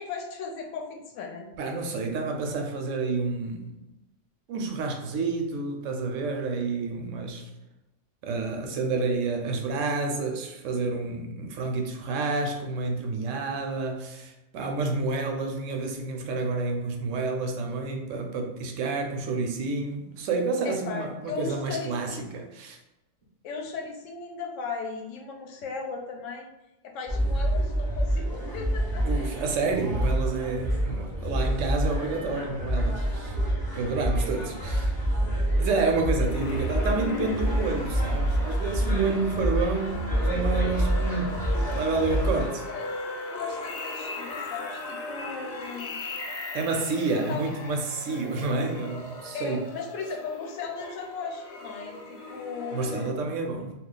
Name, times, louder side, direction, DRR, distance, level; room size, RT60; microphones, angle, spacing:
voice 1, 0.0-1.5 20.6-22.4 23.4-26.5 26.8-29.0 42.1-42.4 42.7-42.8 43.3-46.0 47.1-47.4 49.3-53.3, left 5 dB, 80° left, 1.0 m, -37 dB
voice 2, 1.6-3.8 4.5-7.5 8.2-22.8 29.0-33.4 33.7-34.9 35.6-41.4 41.7-42.5 46.5-49.6 52.7-53.7, right 3 dB, 80° right, 0.9 m, -29 dB
sound 1, 27.1-42.5, right 1 dB, 35° left, 0.3 m, -27 dB
sound 2, 36.2-53.1, left 3 dB, 55° left, 0.8 m, -38 dB
2.3 x 2.3 x 3.7 m
omnidirectional pair, 1.3 m